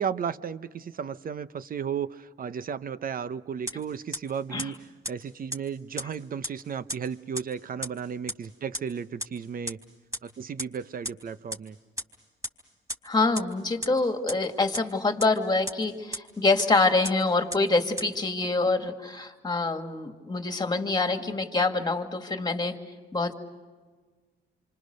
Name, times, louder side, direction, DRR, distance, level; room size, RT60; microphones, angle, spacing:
voice 1, 0.0-4.8 5.1-9.8 10.2-11.8, right 7 dB, 45° right, 14 dB, 0.8 m, -34 dB
sound 1, 3.7-3.8 4.1-4.2 4.6-4.7 5.0-5.1 5.5-5.6 6.0-6.1 6.4-6.5 6.9-7.0 7.4-7.5 7.8-7.9 8.3-8.4 8.7-8.8 9.2-9.3 9.7-9.8 10.1-10.2 10.6-10.7 11.0-11.1 11.5-11.6 12.0-12.1 12.4-12.5 12.9-13.0 13.3-13.4 13.8-13.9 14.3-14.4 14.7-14.8 15.2-15.3 15.7-15.8 16.1-16.2 16.6-16.7 17.0-17.1 17.5-17.6 18.0-18.1, equal, 15° right, 4.0 m, -31 dB
voice 2, 13.0-22.7 23.1-23.3, left 3 dB, 20° left, 5 dB, 2.3 m, -26 dB
28.0 x 25.5 x 6.6 m, 1.4 s
cardioid pair, 90°, 20 cm